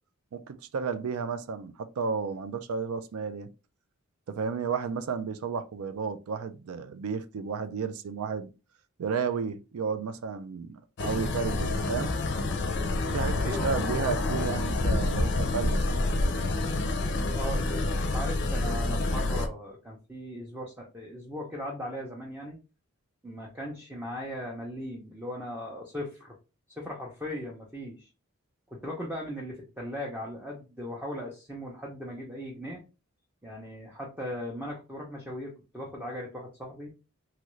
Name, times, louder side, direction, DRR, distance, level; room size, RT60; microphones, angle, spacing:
voice 1, 0.3-3.5 4.3-8.5 9.0-12.1 13.1-16.0, right 5 dB, 85° right, 0.4 m, -32 dB
sound 1, 11.0-19.5, left 2 dB, 55° left, 0.5 m, -28 dB
voice 2, 13.4-14.1 17.3-22.6 23.2-26.4 26.8-28.1 28.7-32.8 33.4-36.9, equal, 10° right, 0.6 m, -38 dB
3.0 x 2.4 x 3.0 m
head